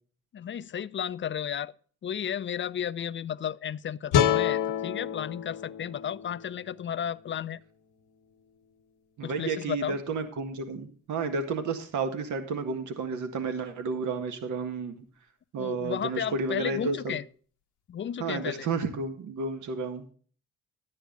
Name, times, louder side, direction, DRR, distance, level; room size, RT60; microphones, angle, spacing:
voice 1, 0.3-1.7 2.0-7.6 9.2-10.0 15.6-17.2 17.9-18.7, left 9 dB, 40° left, 0.5 m, -33 dB
sound 1, 4.1-7.3, left 9 dB, 90° left, 1.3 m, -28 dB
voice 2, 9.2-15.0 15.5-17.2 18.2-20.1, right 4 dB, 75° right, 1.8 m, -31 dB
11.5 x 9.6 x 3.9 m
cardioid pair, 90°, 30 cm